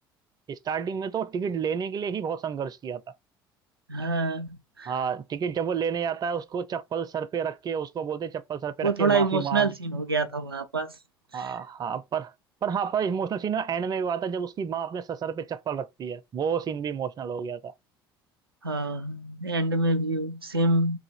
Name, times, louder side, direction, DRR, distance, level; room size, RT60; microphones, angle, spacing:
voice 1, 0.5-3.0 4.9-9.7 11.3-12.3 12.6-17.7, right 7 dB, 35° right, 0.5 m, -30 dB
voice 2, 3.9-4.9 8.8-10.9 11.3-11.5 18.6-21.0, right 3 dB, 90° right, 0.4 m, -26 dB
2.8 x 2.7 x 4.1 m
figure-of-eight pair, 55°, 12 cm